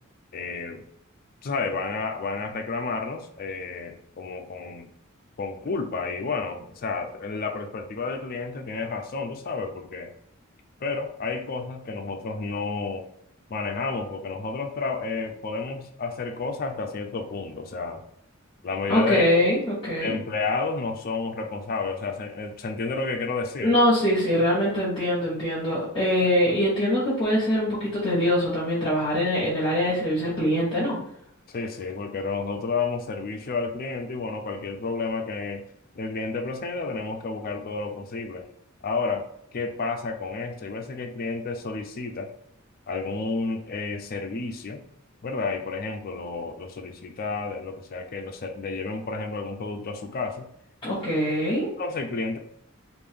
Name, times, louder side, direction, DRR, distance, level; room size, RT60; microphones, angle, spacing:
voice 1, 0.3-0.8 1.4-4.9 5.4-10.1 10.8-13.1 13.5-18.0 18.6-19.3 20.0-23.7 31.5-35.6 36.0-38.5 38.8-39.3 39.5-42.3 42.9-44.8 45.2-50.5 51.8-52.4, left 4 dB, 45° left, 4 dB, 0.5 m, -31 dB
voice 2, 18.9-20.1 23.6-31.0 50.8-51.7, equal, 25° left, -8 dB, 1.1 m, -23 dB
3.5 x 2.6 x 3.4 m, 0.73 s
head